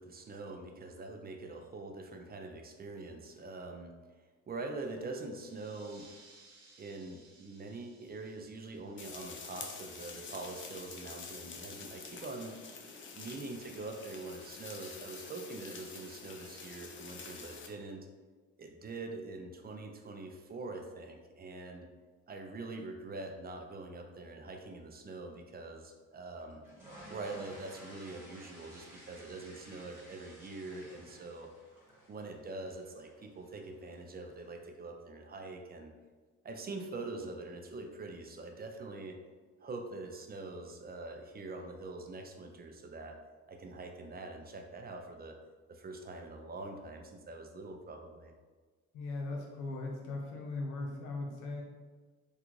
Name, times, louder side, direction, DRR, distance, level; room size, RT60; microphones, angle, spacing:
voice 1, 0.0-3.9 4.5-6.1 6.8-12.5 13.1-18.1 18.6-21.9 22.3-26.6 27.1-31.5 32.1-35.9 36.4-39.2 39.6-43.2 43.5-45.4 45.7-48.3, right 3 dB, 30° right, 4 dB, 0.4 m, -44 dB
sound 1, 5.3-10.5, right 3 dB, 75° right, 1.0 m, -62 dB
sound 2, 9.0-17.7, left 4 dB, 40° left, 0.5 m, -47 dB
sound 3, 26.4-34.4, equal, 5° right, 1.3 m, -55 dB
voice 2, 48.9-51.6, left 2 dB, 85° left, 0 dB, 0.8 m, -39 dB
3.6 x 2.3 x 3.0 m, 1.4 s
cardioid pair, 90°, 30 cm